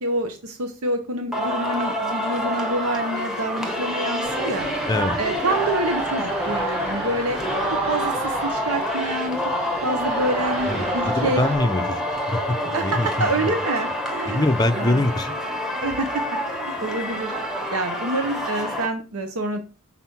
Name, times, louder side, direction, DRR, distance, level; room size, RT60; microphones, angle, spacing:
voice 1, 0.0-4.7 5.2-7.4 7.7-9.4 9.8-11.4 12.7-14.4 14.7-15.0 15.8-17.3 17.7-19.6, right 1 dB, 75° right, 6 dB, 0.8 m, -27 dB
Singing, 1.3-18.9, equal, ahead, 1.0 m, -27 dB
sound 1, 4.2-11.6, right 3 dB, 55° right, 4.2 m, -35 dB
voice 2, 10.7-13.5 14.3-15.3, left 2 dB, 20° left, 7 dB, 0.5 m, -24 dB
6.0 x 4.1 x 5.6 m, 0.36 s
head